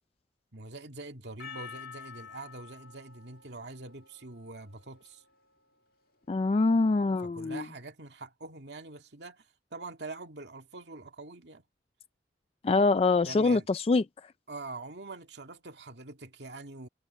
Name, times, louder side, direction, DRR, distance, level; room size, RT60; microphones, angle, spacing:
voice 1, 0.5-5.2 7.2-11.6 13.2-13.7 14.5-16.9, right 3 dB, 75° right, 2.1 m, -44 dB
Percussion, 1.4-5.9, left 7 dB, 55° left, 2.1 m, -49 dB
voice 2, 6.3-7.6 12.6-14.3, left 3 dB, 35° left, 0.3 m, -25 dB
head